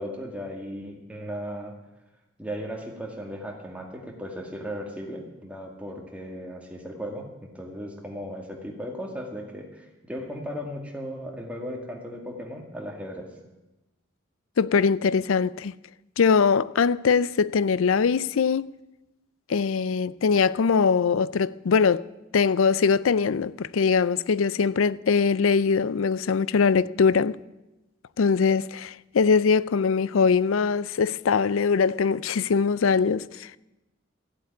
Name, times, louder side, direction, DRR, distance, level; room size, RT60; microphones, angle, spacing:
voice 1, 0.0-1.7 2.4-13.3, equal, 5° right, 2.1 m, -36 dB
voice 2, 14.6-15.7 16.2-18.7 19.5-22.1 22.3-27.4 28.2-33.6, left 5 dB, 80° left, 0.4 m, -22 dB
14.0 x 8.2 x 9.4 m
head